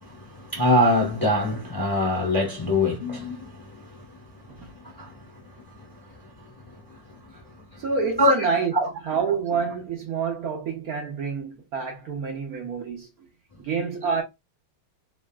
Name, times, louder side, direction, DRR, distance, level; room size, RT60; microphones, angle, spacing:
voice 1, 0.0-4.0 4.7-5.1 5.8-5.9 8.2-8.3 8.7-8.9, left 1 dB, 15° left, 0.8 m, -23 dB
voice 2, 7.8-8.7 9.1-13.1 13.6-14.2, right 5 dB, 65° right, 1.0 m, -27 dB
3.2 x 2.7 x 2.2 m
omnidirectional pair, 2.0 m